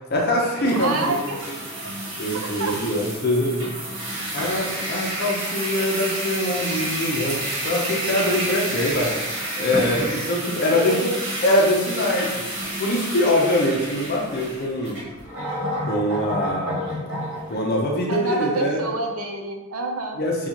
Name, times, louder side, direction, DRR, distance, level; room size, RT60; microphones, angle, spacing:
voice 1, 0.1-1.1 1.8-3.8 4.3-7.4 7.6-9.3 9.6-11.0 11.4-12.5 12.8-15.0 15.8-17.1 17.5-18.8 20.2-20.5, left 1 dB, 45° left, -1 dB, 0.7 m, -23 dB
sound 1, 0.5-17.5, right 1 dB, 65° right, 1.3 m, -30 dB
voice 2, 0.8-1.4 2.4-2.8 10.0-10.2 10.7-11.2 11.6-11.8 18.1-20.2, right 2 dB, 80° right, 3 dB, 0.7 m, -28 dB
6.9 x 2.4 x 2.9 m, 1.1 s
head